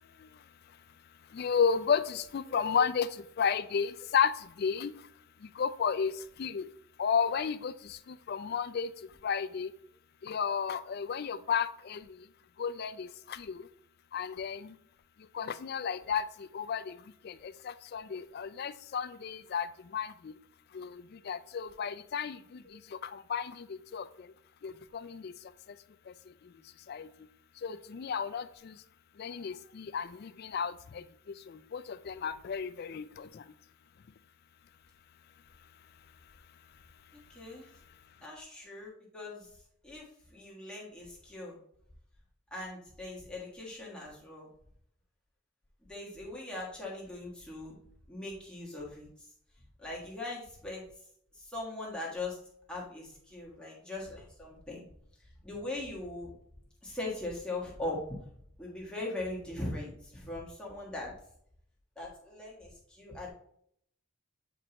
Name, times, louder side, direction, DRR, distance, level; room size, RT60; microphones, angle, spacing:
voice 1, 1.3-3.1 3.4-4.9 5.4-6.7 7.0-8.9 9.2-9.7 10.2-12.3 12.6-13.7 14.1-14.7 15.3-20.3 20.7-24.3 24.6-25.3 25.7-25.8 26.1-26.5 26.9-27.1 27.6-28.8 29.2-33.5, left 6 dB, 45° left, 0.3 m, -33 dB
voice 2, 2.5-2.8 37.1-37.7 38.2-39.6 39.8-41.6 42.5-44.5 45.9-47.8 48.1-49.3 49.8-50.9 51.3-52.4 52.7-54.8 55.4-56.3 56.8-58.0 58.6-61.2 61.9-63.3, left 2 dB, 5° left, 1.4 m, -40 dB
7.3 x 4.6 x 2.9 m
head